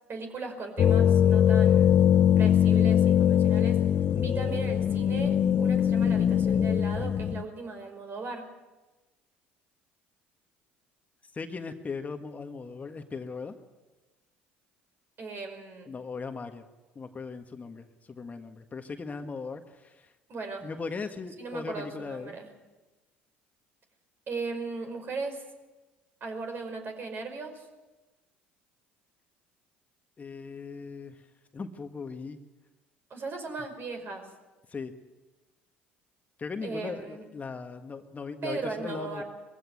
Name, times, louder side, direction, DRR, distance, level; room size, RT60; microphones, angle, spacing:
voice 1, 0.1-2.0 2.4-3.8 4.1-8.5 15.2-15.9 20.3-20.7 21.4-22.5 24.3-25.4 26.2-27.7 33.1-34.3 36.6-37.2 38.4-39.2, right 4 dB, 45° right, 4 dB, 5.2 m, -37 dB
sound 1, 0.8-7.4, left 9 dB, 45° left, 0.8 m, -22 dB
voice 2, 11.3-13.5 15.9-16.7 16.9-20.1 20.6-22.4 30.2-31.3 31.5-32.4 34.7-34.9 36.4-39.2, left 4 dB, 30° left, 7 dB, 1.6 m, -38 dB
21.5 x 15.5 x 9.6 m, 1.2 s
hypercardioid pair, 60°, 5 cm